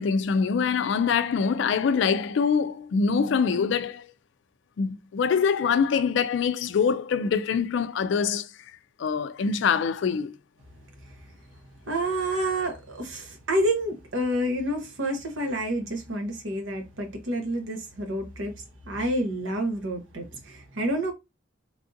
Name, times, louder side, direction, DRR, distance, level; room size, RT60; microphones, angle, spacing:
voice 1, 0.0-4.1 4.8-8.5 9.0-10.3, left 6 dB, 65° left, 0.3 m, -24 dB
voice 2, 11.9-18.5 18.9-21.1, right 1 dB, 70° right, 0.9 m, -28 dB
3.4 x 2.5 x 2.6 m
head